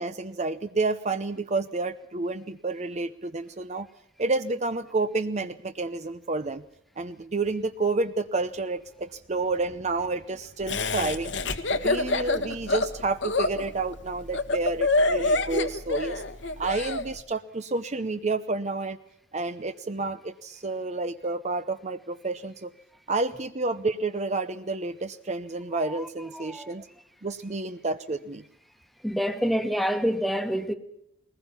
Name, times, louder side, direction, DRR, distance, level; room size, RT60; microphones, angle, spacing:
voice 1, 0.0-3.9 4.2-6.6 7.0-16.2 16.6-19.0 19.3-22.7 23.1-26.9 27.2-28.4, right 3 dB, 35° right, 0.7 m, -30 dB
Laughter, 10.7-17.0, left 2 dB, 65° left, 1.6 m, -26 dB
voice 2, 26.3-26.7 29.0-30.7, equal, ahead, 1.4 m, -27 dB
21.5 x 19.5 x 7.1 m
head